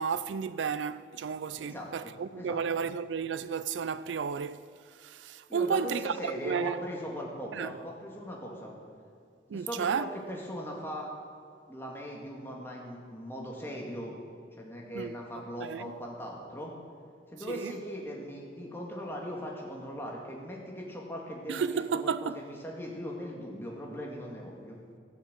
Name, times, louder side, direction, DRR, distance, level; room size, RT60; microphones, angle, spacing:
voice 1, 0.0-4.6 5.0-6.8 7.5-7.7 9.5-10.1 14.9-15.2 15.6-15.9 17.5-17.7 21.5-22.4, right 6 dB, 90° right, 0.4 m, -32 dB
voice 2, 5.5-8.7 9.5-11.1 11.7-14.1 14.6-16.7 17.3-24.8, equal, 15° left, 2.0 m, -39 dB
16.0 x 6.5 x 7.5 m
head